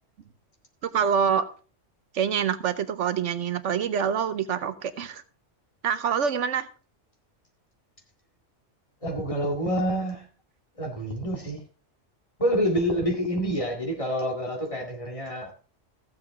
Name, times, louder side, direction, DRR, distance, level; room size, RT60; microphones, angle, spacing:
voice 1, 0.8-1.5 2.1-5.2 5.8-6.7, right 7 dB, 75° right, 1.1 m, -26 dB
voice 2, 9.0-10.3 10.8-11.6 12.4-15.6, equal, 25° left, 2.1 m, -27 dB
14.5 x 7.7 x 3.6 m
omnidirectional pair, 1.3 m